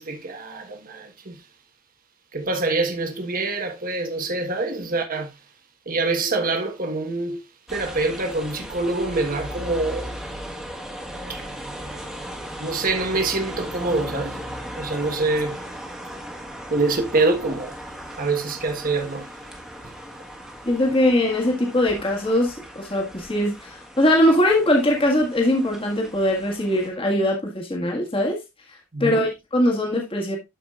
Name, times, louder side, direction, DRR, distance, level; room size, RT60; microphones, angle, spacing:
voice 1, 0.0-1.4 2.3-5.4 5.9-7.4 7.7-10.2 11.3-11.4 12.6-14.4 14.8-15.6 16.7-17.7 18.2-19.3 19.8-19.9 28.9-29.2, right 3 dB, 40° right, 1.3 m, -25 dB
sound 1, 7.7-26.9, equal, ahead, 1.5 m, -37 dB
voice 2, 20.7-28.4 29.0-30.4, left 1 dB, 25° left, 1.8 m, -21 dB
12.5 x 5.0 x 2.4 m
head